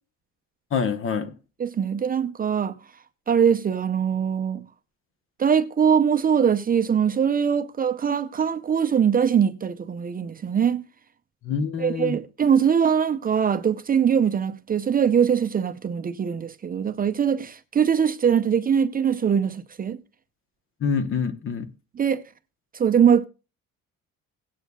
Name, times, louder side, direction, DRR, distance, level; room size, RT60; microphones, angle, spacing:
voice 1, 0.7-1.3 11.4-12.2 20.8-21.7, left 6 dB, 45° left, 1.0 m, -26 dB
voice 2, 1.6-2.8 3.3-4.7 5.4-10.8 11.8-20.0 22.0-22.2 22.7-23.2, right 7 dB, 30° right, 0.6 m, -22 dB
17.5 x 8.9 x 2.3 m
cardioid pair, 130°, 31 cm